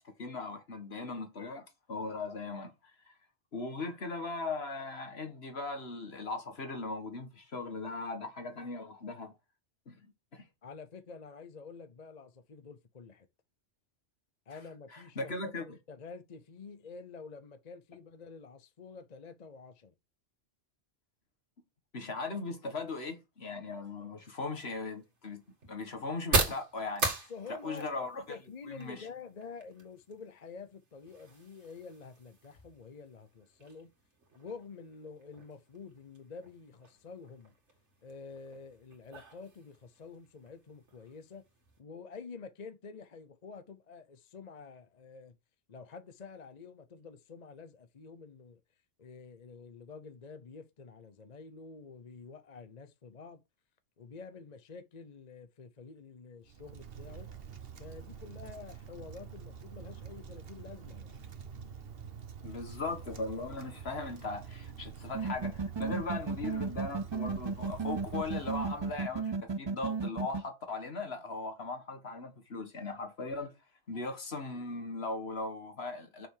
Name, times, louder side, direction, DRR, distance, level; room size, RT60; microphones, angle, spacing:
voice 1, 0.0-2.7 3.1-3.2 3.5-9.3 9.9-10.0 10.3-10.4 14.5-14.6 14.9-15.7 21.9-28.2 28.7-29.1 62.4-73.5 73.9-76.3, left 3 dB, 65° left, 1.9 m, -39 dB
voice 2, 10.6-13.3 14.5-19.9 27.3-33.9 34.3-37.5 38.0-41.5 41.8-45.4 45.7-48.6 49.0-53.4 54.0-57.3 57.8-61.2, left 5 dB, 40° left, 0.8 m, -48 dB
sound 1, 24.2-41.8, right 3 dB, 85° right, 2.4 m, -40 dB
Wind, 56.4-69.3, right 7 dB, 60° right, 1.3 m, -47 dB
sound 2, 65.1-70.4, right 4 dB, 30° right, 0.5 m, -33 dB
6.9 x 6.2 x 4.8 m
omnidirectional pair, 1.2 m